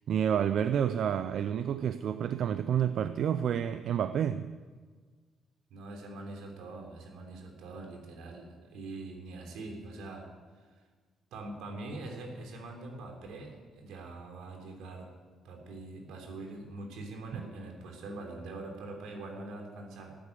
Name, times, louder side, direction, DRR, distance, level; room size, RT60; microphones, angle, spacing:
voice 1, 0.1-4.5 17.3-17.4, right 9 dB, 70° right, 0.5 m, -29 dB
voice 2, 5.7-10.3 10.6-10.7 11.3-15.1 15.4-20.2, right 2 dB, 90° right, 3.5 m, -43 dB
13.5 x 10.0 x 9.4 m
cardioid pair, 90°, 0 cm